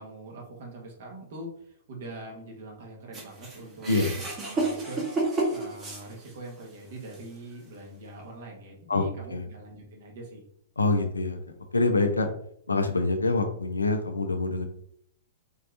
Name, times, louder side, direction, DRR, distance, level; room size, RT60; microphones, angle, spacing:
voice 1, 0.0-5.1 5.5-10.4, right 2 dB, 55° right, 0 dB, 1.5 m, -43 dB
sound 1, 3.1-6.6 7.1-7.2 8.2-8.3, right 2 dB, 20° right, 1.2 m, -31 dB
voice 2, 10.8-11.4 11.7-12.3 12.7-14.6, left 3 dB, 80° left, 6 dB, 0.6 m, -25 dB
4.5 x 3.4 x 2.6 m, 0.67 s
figure-of-eight pair, 105°, 0 cm